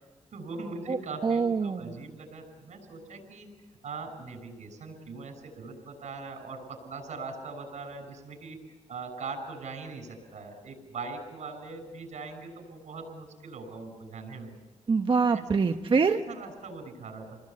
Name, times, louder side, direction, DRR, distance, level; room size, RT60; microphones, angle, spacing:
voice 1, 0.3-3.5 3.8-8.6 8.9-14.5 15.3-15.4 16.3-17.4, right 3 dB, 85° right, 6 dB, 6.8 m, -41 dB
voice 2, 0.9-1.9 14.9-16.2, right 5 dB, 45° right, 6 dB, 1.0 m, -25 dB
29.5 x 20.5 x 8.6 m, 1.2 s
wide cardioid pair, 110°, 12 cm